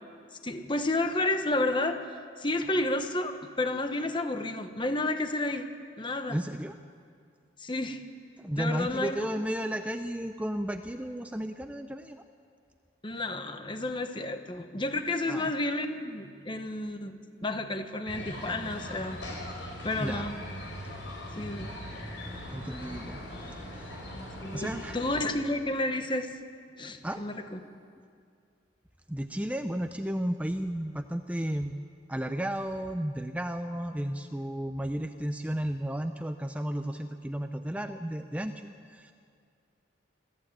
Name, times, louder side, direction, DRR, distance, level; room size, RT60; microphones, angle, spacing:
voice 1, 0.4-2.0 2.4-5.7 6.0-6.4 7.6-8.0 8.6-9.3 13.0-19.2 19.8-20.3 21.4-21.7 24.4-26.3 26.8-27.6, left 2 dB, 25° left, 7 dB, 1.2 m, -31 dB
voice 2, 6.3-6.8 8.4-12.2 15.3-15.5 20.0-20.2 22.5-24.0 24.5-25.0 27.0-27.2 29.1-31.7 32.1-39.1, right 1 dB, 5° right, 7 dB, 0.5 m, -33 dB
sound 1, 18.1-25.2, left 1 dB, 70° left, 5.9 m, -40 dB
21.5 x 14.5 x 8.7 m, 2.3 s
head